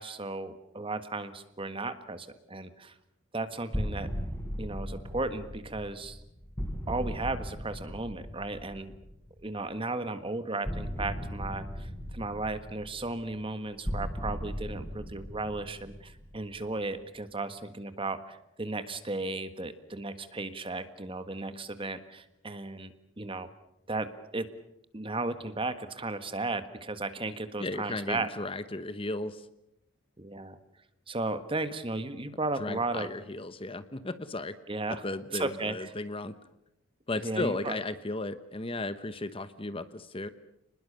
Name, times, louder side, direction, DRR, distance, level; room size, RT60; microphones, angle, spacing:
voice 1, 0.0-2.9 3.3-4.1 4.6-6.2 6.9-8.9 9.4-23.5 23.9-24.5 24.9-28.3 30.2-30.6 31.1-33.1 34.7-35.0 35.3-35.9 37.2-37.8, right 2 dB, 25° right, 10 dB, 1.5 m, -35 dB
sound 1, 3.7-9.5 10.6-16.9, equal, 10° left, 4.9 m, -38 dB
voice 2, 27.6-29.5 32.6-34.6 34.9-36.3 37.1-40.3, left 2 dB, 25° left, 12 dB, 1.0 m, -35 dB
29.5 x 20.5 x 6.8 m, 0.81 s
head